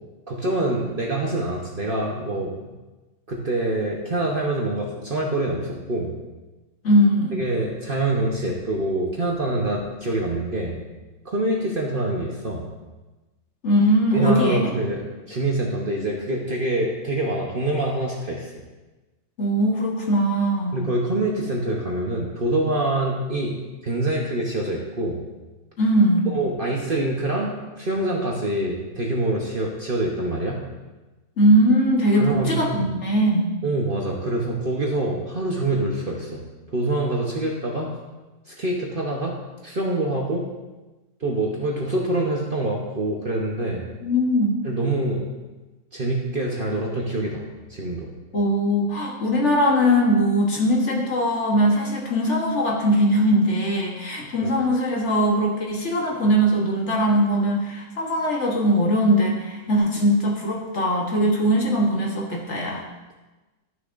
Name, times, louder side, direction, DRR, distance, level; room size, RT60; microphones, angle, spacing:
voice 1, 0.3-2.7 3.3-6.2 7.3-10.8 11.2-12.7 14.1-15.0 15.3-18.5 20.7-23.6 23.8-25.2 26.3-30.6 32.1-32.9 33.6-36.4 36.7-37.9 38.5-39.4 39.6-40.5 41.2-43.8 44.6-45.2 45.9-47.4 47.7-48.1 54.4-54.6, right 2 dB, 40° right, -2 dB, 0.9 m, -25 dB
voice 2, 6.8-7.4 13.6-14.7 19.4-20.8 25.8-26.3 31.4-33.5 44.0-44.6 48.3-62.8, equal, 50° left, -1 dB, 1.4 m, -20 dB
12.5 x 6.7 x 2.5 m, 1.2 s
omnidirectional pair, 1.7 m